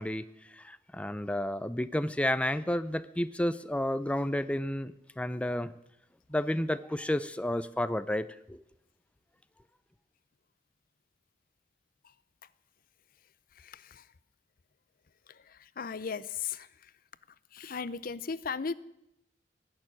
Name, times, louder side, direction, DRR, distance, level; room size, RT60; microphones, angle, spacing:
voice 1, 0.0-5.7 6.3-8.6, left 1 dB, 5° left, 13 dB, 0.5 m, -31 dB
voice 2, 15.8-16.7 17.5-18.7, left 5 dB, 50° left, 17 dB, 0.6 m, -35 dB
18.5 x 6.8 x 10.0 m, 0.84 s
head